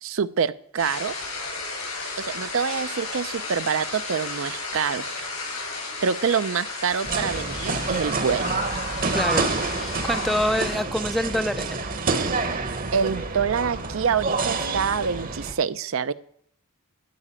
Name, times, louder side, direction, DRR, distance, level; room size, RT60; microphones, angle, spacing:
voice 1, 0.0-1.1 2.2-5.0 6.0-8.5 12.9-16.1, right 6 dB, 65° right, 14 dB, 0.5 m, -26 dB
sound 1, 0.8-10.7, left 3 dB, 85° left, 5.8 m, -33 dB
sound 2, 7.0-15.5, right 3 dB, 40° right, 0.9 m, -28 dB
voice 2, 9.1-9.5 9.8-11.8, equal, ahead, 11 dB, 0.4 m, -26 dB
12.5 x 5.0 x 8.8 m, 0.65 s
head